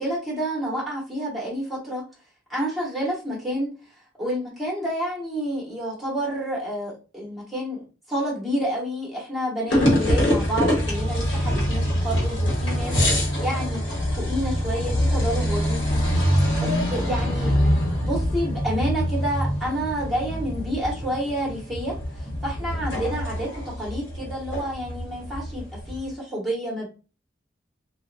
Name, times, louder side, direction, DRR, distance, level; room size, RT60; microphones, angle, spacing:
voice 1, 0.0-2.0 2.5-3.7 4.2-7.8 8.1-12.9 13.4-13.8 14.1-16.0 16.3-17.6 18.0-26.9, equal, ahead, -5 dB, 1.0 m, -29 dB
sound 1, 9.7-26.1, equal, 75° left, 1.0 m, -24 dB
2.7 x 2.1 x 2.4 m, 0.33 s
head